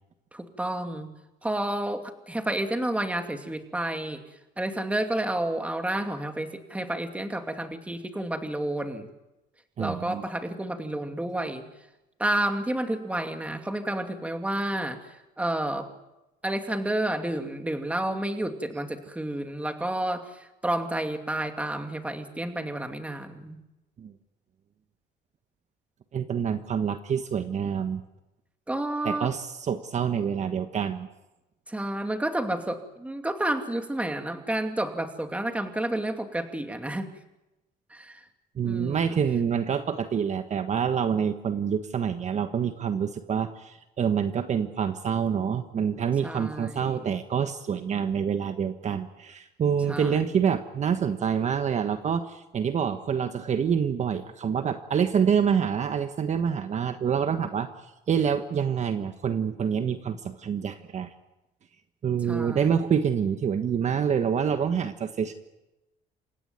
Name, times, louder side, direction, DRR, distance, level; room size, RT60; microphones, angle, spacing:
voice 1, 0.3-1.1 1.4-4.2 4.6-9.1 9.8-11.6 12.2-15.9 16.4-23.6 28.7-29.3 31.7-37.1 37.9-38.2 38.6-39.2 46.2-47.1 49.9-50.2 62.3-62.7, right 1 dB, 10° right, 6 dB, 2.6 m, -30 dB
voice 2, 9.8-10.2 24.0-24.1 26.1-28.0 29.0-31.1 38.6-57.7 58.1-61.1 62.0-65.3, right 7 dB, 45° right, 8 dB, 1.4 m, -27 dB
28.5 x 16.5 x 9.4 m, 0.99 s
cardioid pair, 110°, 17 cm